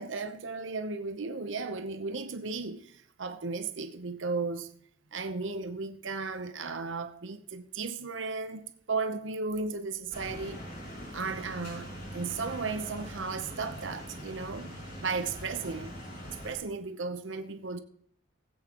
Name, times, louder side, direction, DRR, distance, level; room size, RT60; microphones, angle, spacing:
voice 1, 0.0-4.7 5.1-10.6 11.1-15.9 16.4-17.8, right 4 dB, 80° right, 0.8 m, -35 dB
sound 1, 10.1-16.5, equal, 55° left, 4.8 m, -42 dB
20.0 x 8.1 x 3.0 m
head